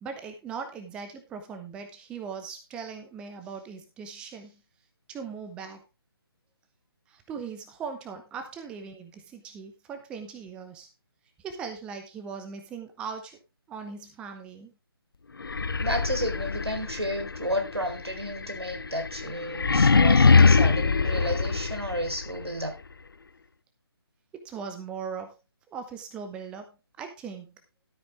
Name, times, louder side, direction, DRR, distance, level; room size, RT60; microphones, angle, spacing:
voice 1, 0.0-4.6 5.1-5.8 7.1-10.9 11.4-13.4 13.7-14.7 24.3-25.4 25.7-27.5, right 6 dB, 5° right, 7 dB, 0.9 m, -39 dB
sound 1, 15.4-22.3, left 4 dB, 60° left, 0.6 m, -23 dB
voice 2, 15.8-22.8, equal, 80° right, 5 dB, 4.1 m, -32 dB
13.0 x 8.8 x 3.4 m, 0.25 s
figure-of-eight pair, 145°, 13 cm